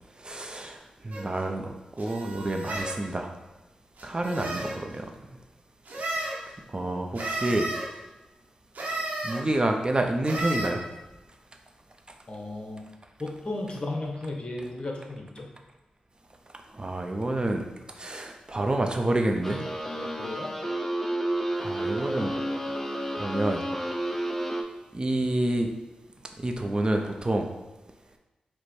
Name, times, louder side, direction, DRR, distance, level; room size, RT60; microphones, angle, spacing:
voice 1, 0.2-0.8 1.0-3.3 4.0-5.1 6.1-6.3 6.7-7.7 9.2-10.8 16.7-17.6 18.0-19.6 21.6-22.3 23.2-23.6 24.9-25.7 26.4-27.5, right 1 dB, 30° right, 3 dB, 0.6 m, -28 dB
sound 1, 1.1-1.3 2.0-3.0 4.0-4.8 5.9-6.4 7.1-7.8 8.7-9.4 10.2-10.7, right 2 dB, 70° right, 0.9 m, -33 dB
voice 2, 12.3-12.8 13.2-15.5 20.0-20.5, left 2 dB, 40° left, 0 dB, 1.0 m, -35 dB
sound 2, 19.4-24.6, right 1 dB, 10° left, 0.6 m, -31 dB
4.8 x 2.1 x 4.3 m, 1.1 s
cardioid pair, 50°, 3 cm